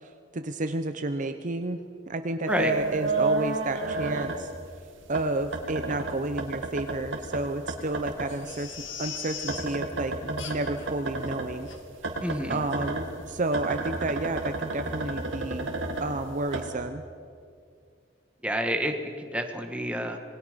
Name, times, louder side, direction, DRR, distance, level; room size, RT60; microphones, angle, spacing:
voice 1, 0.0-1.8 2.1-4.5 5.1-11.7 12.5-15.7 16.0-17.0, right 2 dB, 40° right, 8 dB, 0.8 m, -31 dB
sound 1, 2.5-4.8 5.1-8.3 8.6-11.5 12.0-16.6, right 2 dB, 90° right, 2.4 m, -31 dB
Crying sobbing, 8.3-9.8 10.4-10.9 11.2-11.3 11.7-11.8 12.3-12.4 12.7-12.8, left 7 dB, 75° left, 2.0 m, -39 dB
voice 2, 12.2-12.6 18.4-20.2, equal, 5° right, 4 dB, 1.6 m, -29 dB
26.5 x 20.5 x 5.2 m, 2.3 s
head